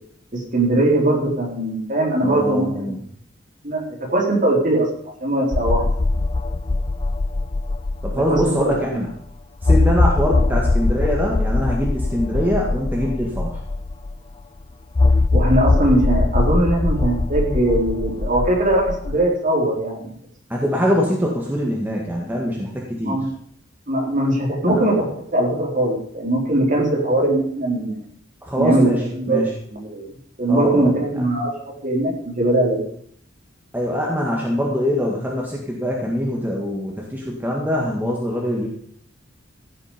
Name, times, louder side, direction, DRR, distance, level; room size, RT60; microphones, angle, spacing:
voice 1, 0.5-3.0 3.6-3.8 4.1-4.9 5.2-5.8 8.3-8.8 15.3-20.1 23.0-23.3 23.9-28.0 28.6-28.9 29.2-29.4 29.7-30.1 30.4-32.8, right 1 dB, 40° right, -3 dB, 4.4 m, -20 dB
voice 2, 2.2-3.0 8.0-9.1 9.6-13.6 20.5-23.2 24.7-24.8 28.4-29.5 30.5-30.9 33.7-38.7, equal, 10° right, -2 dB, 1.9 m, -23 dB
sound 1, 5.5-8.8 9.1-9.2 9.6-14.2 15.0-19.3, left 2 dB, 25° left, 0.4 m, -21 dB
15.0 x 9.1 x 5.2 m, 0.62 s
head